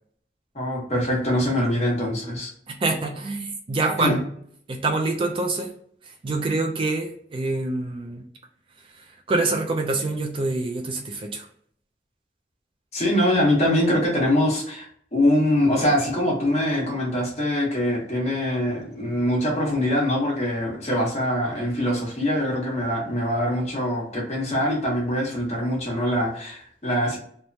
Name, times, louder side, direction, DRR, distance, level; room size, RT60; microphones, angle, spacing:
voice 1, 0.5-2.5 4.0-4.2 12.9-27.2, left 1 dB, 40° left, -3 dB, 1.2 m, -23 dB
voice 2, 2.7-4.2 4.7-5.7 6.2-8.3 9.3-11.5, right 3 dB, 30° right, 2 dB, 0.3 m, -26 dB
3.0 x 2.1 x 2.6 m, 0.64 s
head